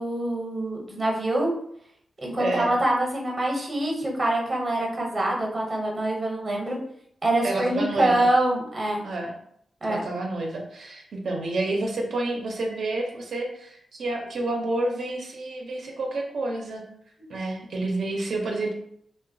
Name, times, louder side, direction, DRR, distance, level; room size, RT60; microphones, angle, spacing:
voice 1, 0.0-1.5 2.2-6.8 7.2-9.0 9.8-10.0 17.2-17.3, right 1 dB, 30° right, -1 dB, 0.7 m, -25 dB
voice 2, 2.4-2.8 7.4-8.3 9.0-9.4 9.9-16.8 17.3-18.7, right 2 dB, 75° right, -1 dB, 0.5 m, -29 dB
2.9 x 2.1 x 2.5 m, 0.69 s
wide cardioid pair, 100°, 0 cm